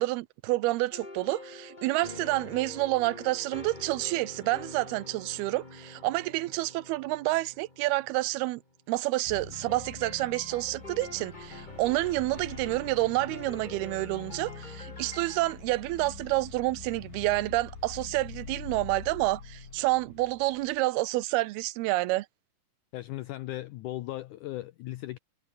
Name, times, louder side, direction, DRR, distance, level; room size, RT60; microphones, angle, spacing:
voice 1, 0.0-8.6 8.9-22.3, right 19 dB, 85° right, 2.7 m, -29 dB
sound 1, 0.9-8.7 9.5-15.5, left 2 dB, 15° left, 2.6 m, -46 dB
sound 2, 9.3-20.8, left 5 dB, 55° left, 6.5 m, -45 dB
sound 3, 10.2-14.6, right 4 dB, 70° right, 8.5 m, -63 dB
voice 2, 22.9-25.2, left 16 dB, 85° left, 1.8 m, -37 dB
omnidirectional pair, 4.4 m